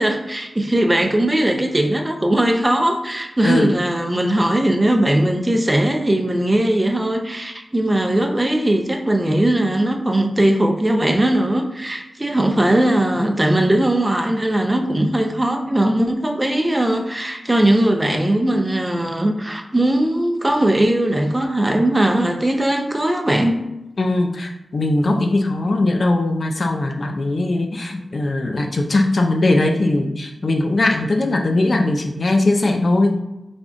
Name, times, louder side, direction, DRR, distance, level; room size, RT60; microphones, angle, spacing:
voice 1, 0.0-23.6, right 1 dB, 20° right, 4 dB, 0.5 m, -19 dB
voice 2, 24.0-33.2, left 2 dB, 60° left, 3 dB, 0.5 m, -19 dB
3.8 x 3.4 x 2.5 m, 0.96 s
cardioid pair, 55°, 0 cm